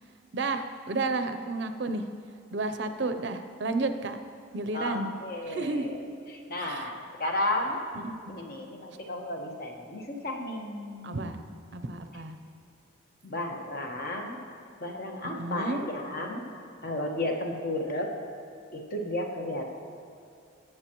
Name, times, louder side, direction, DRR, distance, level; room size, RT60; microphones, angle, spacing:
voice 1, 0.3-2.0 2.5-4.2 4.5-5.1 5.5-6.0 6.6-6.9 7.9-8.4 11.0-11.4 11.7-12.4 15.2-15.8, right 3 dB, 60° right, 8 dB, 0.6 m, -32 dB
voice 2, 4.7-6.0 6.5-7.8 8.3-11.3 13.2-14.4 14.8-16.5 16.8-18.1 18.7-19.7, left 1 dB, 45° left, 1 dB, 1.2 m, -33 dB
19.0 x 7.7 x 3.0 m, 2.5 s
head